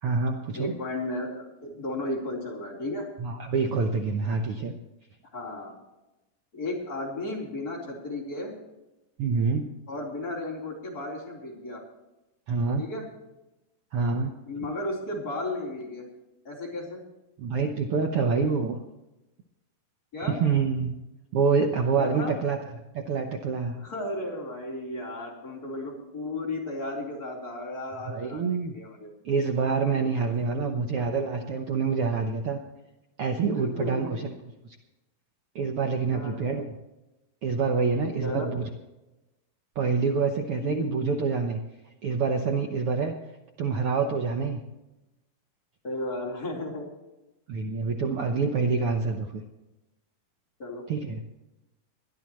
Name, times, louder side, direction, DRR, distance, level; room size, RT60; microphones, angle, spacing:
voice 1, 0.0-0.7 3.2-4.7 9.2-9.7 12.5-12.9 13.9-14.3 17.4-18.8 20.2-21.0 21.3-22.6 22.9-23.8 28.0-28.7 29.2-32.6 33.2-34.3 35.5-36.7 37.4-38.7 39.7-41.6 42.0-43.1 43.6-44.6 47.5-49.4 50.9-51.2, right 5 dB, 80° right, 3 dB, 1.2 m, -26 dB
voice 2, 0.5-3.1 5.3-5.7 6.5-8.5 9.9-11.8 12.8-13.0 14.5-16.1 16.4-17.0 20.1-20.4 22.0-22.4 23.8-29.1 30.5-30.8 33.6-34.3 36.1-36.7 38.2-38.5 40.6-41.2 45.8-46.9 50.6-50.8, left 2 dB, 25° left, -5 dB, 4.2 m, -34 dB
22.0 x 12.5 x 3.1 m, 0.98 s
omnidirectional pair, 4.1 m